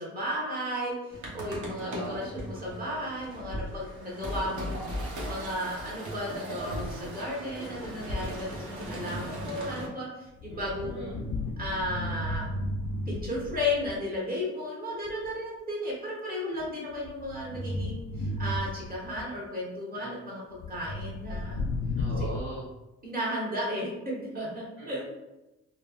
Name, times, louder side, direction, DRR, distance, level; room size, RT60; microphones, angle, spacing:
voice 1, 0.0-4.9 5.3-11.2 11.6-12.5 13.1-21.7 22.2-22.3 23.0-25.0, left 1 dB, 30° right, -5 dB, 1.2 m, -34 dB
sound 1, 1.1-9.9, equal, 75° right, 0.9 m, -37 dB
voice 2, 1.8-2.2 10.5-11.1 19.9-20.1 22.0-22.6 24.8-25.1, right 1 dB, 50° right, -8 dB, 0.9 m, -40 dB
sound 2, 10.3-14.0 15.1-15.3 16.6-19.2 20.6-22.4, left 2 dB, 50° left, 0.4 m, -34 dB
3.3 x 2.1 x 2.4 m, 0.99 s
cardioid pair, 90°, 30 cm